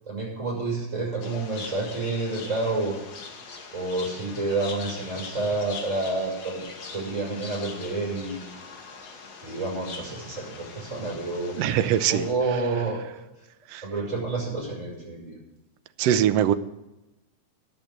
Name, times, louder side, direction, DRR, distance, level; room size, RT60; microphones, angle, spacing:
voice 1, 0.1-3.0 3.7-6.6 6.9-8.6 9.4-11.6 12.1-13.0 13.8-15.3, right 3 dB, 25° right, -4 dB, 5.8 m, -29 dB
sound 1, 1.2-12.3, left 4 dB, 60° left, 2.7 m, -42 dB
voice 2, 11.6-12.3 13.7-13.8 16.0-16.5, right 10 dB, 75° right, 10 dB, 1.5 m, -22 dB
10.5 x 8.0 x 8.5 m, 0.99 s
omnidirectional pair, 3.3 m